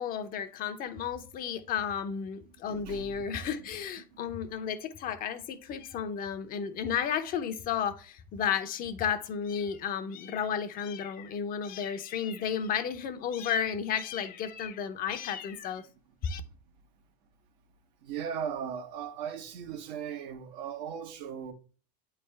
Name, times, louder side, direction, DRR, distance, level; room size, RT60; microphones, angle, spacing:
voice 1, 0.0-15.8 16.2-16.4, left 7 dB, 45° left, 0.7 m, -33 dB
voice 2, 2.7-3.2 18.0-21.5, right 7 dB, 75° right, 1.0 m, -37 dB
8.4 x 3.4 x 3.3 m
supercardioid pair, 115°, 21 cm